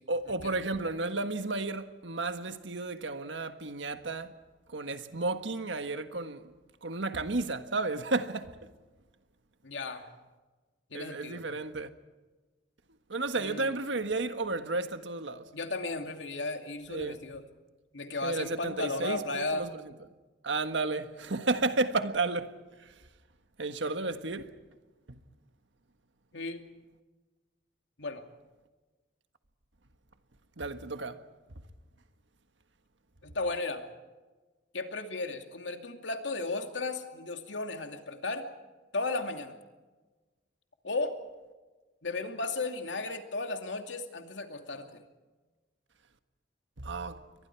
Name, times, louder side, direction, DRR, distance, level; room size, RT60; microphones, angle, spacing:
voice 1, 0.1-4.3 4.7-6.4 6.8-8.5 10.9-11.9 13.1-15.5 16.9-17.2 18.2-19.8 20.4-22.6 22.8-22.9 23.6-24.5 25.1-25.2 30.6-31.2 46.8-47.2, right 3 dB, 90° right, 1.6 m, -32 dB
voice 2, 9.6-10.1 10.9-11.4 13.3-13.8 15.5-17.4 17.9-19.7 26.3-26.6 28.0-28.2 33.2-33.9 34.7-38.5 38.9-39.6 40.8-41.2 42.0-45.0, left 3 dB, 80° left, 2.6 m, -35 dB
29.5 x 23.5 x 4.7 m
head